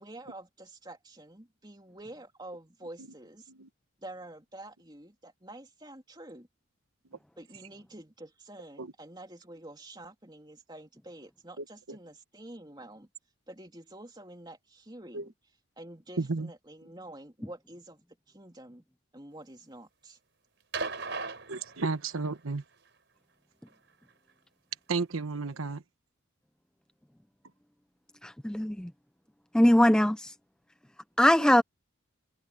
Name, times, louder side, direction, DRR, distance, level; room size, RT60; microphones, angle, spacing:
voice 1, 0.0-3.5 4.0-6.5 7.4-13.1 13.5-15.3 15.8-18.8 19.1-20.2, right 1 dB, 20° right, 3.1 m, -48 dB
voice 2, 11.6-12.0 15.1-15.3 16.2-16.5 21.5-22.6 24.9-25.8, right 4 dB, 85° right, 1.1 m, -33 dB
sound 1, 20.7-22.4 23.7-23.8, right 4 dB, 55° right, 5.6 m, -37 dB
voice 3, 28.2-28.9 29.5-30.3 31.2-31.6, left 1 dB, 5° left, 0.4 m, -21 dB
head